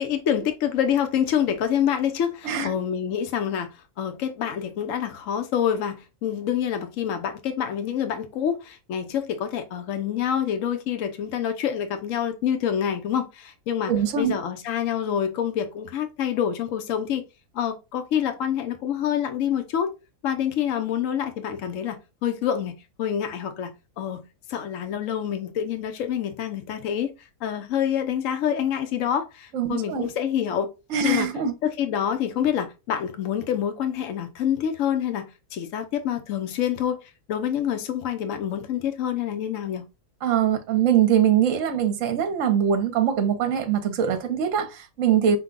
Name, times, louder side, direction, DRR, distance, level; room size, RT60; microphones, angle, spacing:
voice 1, 0.0-3.7 4.0-17.2 17.5-19.9 20.2-23.7 24.0-27.1 27.4-30.7 31.0-31.3 31.6-37.0 37.3-39.9, left 9 dB, 60° left, 1.1 m, -27 dB
voice 2, 13.9-14.4 29.5-30.1 30.9-31.5 40.2-45.4, right 8 dB, 60° right, 1.1 m, -22 dB
5.8 x 2.2 x 3.8 m
omnidirectional pair, 1.6 m